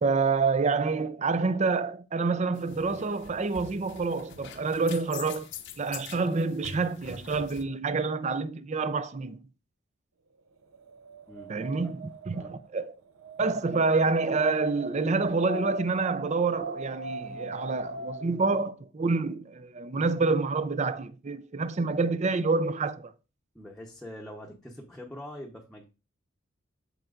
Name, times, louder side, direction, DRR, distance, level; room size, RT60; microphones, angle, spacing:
voice 1, 0.0-5.5 5.8-9.4 11.5-12.9 13.4-23.1, right 4 dB, 35° right, 0.4 m, -27 dB
sound 1, 2.5-7.6, left 6 dB, 60° left, 0.8 m, -45 dB
Wind, 10.6-18.5, right 2 dB, 80° right, 0.7 m, -42 dB
voice 2, 11.3-11.9 12.3-12.5 23.5-25.8, left 1 dB, ahead, 0.8 m, -44 dB
13.0 x 4.4 x 2.5 m
head